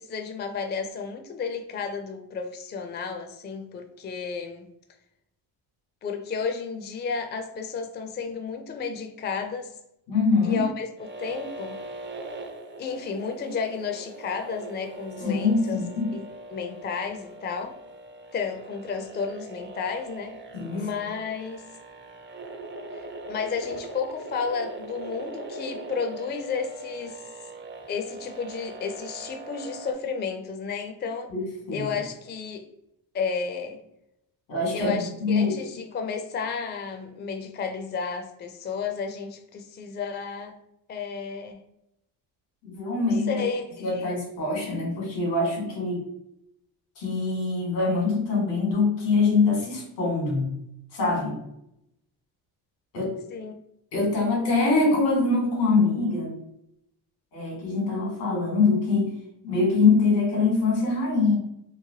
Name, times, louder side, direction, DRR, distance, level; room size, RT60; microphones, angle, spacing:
voice 1, 0.0-4.7 6.0-9.7 10.4-11.8 12.8-15.8 16.1-16.2 16.5-17.8 18.3-20.3 20.7-21.6 22.9-23.0 23.3-27.2 27.9-31.3 31.7-32.7 33.1-33.8 34.7-40.5 40.9-41.6 43.3-44.1 53.3-53.5, left 5 dB, 25° left, 5 dB, 0.4 m, -32 dB
voice 2, 10.1-10.6 15.2-16.1 20.5-20.9 31.3-31.4 31.7-31.9 34.5-34.9 35.2-35.5 42.6-43.4 43.8-46.0 47.0-50.5 50.9-51.3 52.9-53.1 53.9-56.3 57.3-59.1 59.4-61.4, left 3 dB, 85° left, -2 dB, 1.4 m, -23 dB
sound 1, 11.0-29.9, right 2 dB, 25° right, 0.5 m, -41 dB
3.1 x 2.1 x 2.8 m, 0.80 s
supercardioid pair, 60°, 44 cm